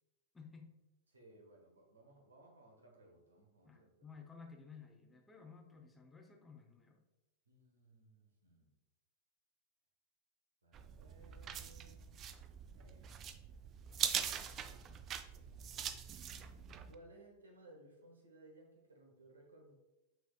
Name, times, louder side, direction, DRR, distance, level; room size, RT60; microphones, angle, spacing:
voice 1, 0.3-0.7 3.6-7.0, left 5 dB, 10° left, 3 dB, 0.6 m, -55 dB
voice 2, 1.1-4.1 7.5-8.7 10.6-12.1 12.7-13.4 14.1-14.8 15.3-15.6 16.9-19.7, right 1 dB, 75° right, 1 dB, 0.9 m, -62 dB
sound 1, 10.7-16.9, right 8 dB, 30° right, 0.3 m, -42 dB
6.1 x 3.5 x 2.2 m, 0.99 s
figure-of-eight pair, 90°, 0 cm